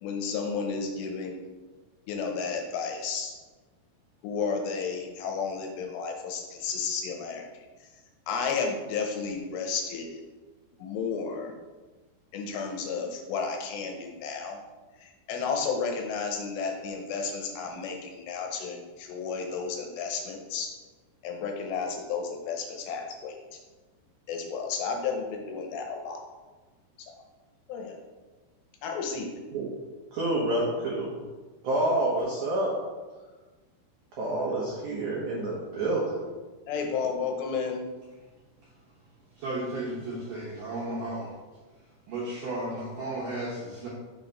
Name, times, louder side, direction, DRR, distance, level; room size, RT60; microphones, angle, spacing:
voice 1, 0.0-1.4 2.1-3.3 4.2-7.5 8.3-10.2 10.8-11.5 12.3-14.6 15.0-20.7 21.2-23.4 24.3-26.2 27.7-28.0 28.8-29.3 36.7-37.8, left 5 dB, 80° left, 2 dB, 2.8 m, -32 dB
voice 2, 30.1-31.2 31.6-32.7 34.1-36.2, right 1 dB, 90° right, -4 dB, 1.7 m, -28 dB
voice 3, 39.4-41.3 42.1-43.9, right 1 dB, 75° right, -5 dB, 2.0 m, -34 dB
6.4 x 4.5 x 5.3 m, 1.3 s
omnidirectional pair, 5.2 m